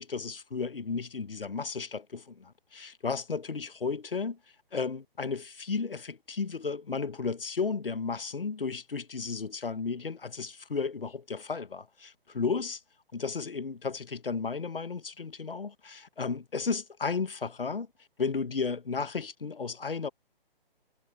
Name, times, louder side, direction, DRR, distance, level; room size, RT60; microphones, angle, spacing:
voice 1, 0.0-4.4 4.7-12.8 13.1-17.9 18.2-20.1, left 5 dB, 70° left, 1.3 m, -33 dB
figure-of-eight pair, 135°, 29 cm